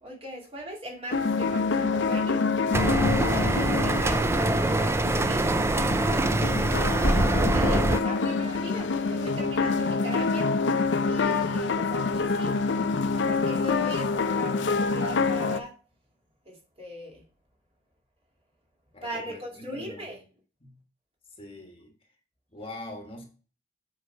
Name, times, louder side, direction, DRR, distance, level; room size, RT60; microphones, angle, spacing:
voice 1, 0.0-2.5 3.3-5.5 6.4-10.6 11.0-12.6 13.1-15.7 16.5-17.2 19.0-20.2, right 1 dB, 30° right, -1 dB, 2.4 m, -39 dB
sound 1, 1.1-15.6, left 4 dB, 65° left, 0.6 m, -27 dB
sound 2, 2.7-8.0, right 2 dB, 15° right, 0.4 m, -24 dB
voice 2, 18.9-20.1 20.6-20.8 21.4-21.9 22.5-23.3, left 1 dB, 30° left, 2 dB, 1.5 m, -43 dB
7.6 x 4.9 x 4.5 m, 0.37 s
head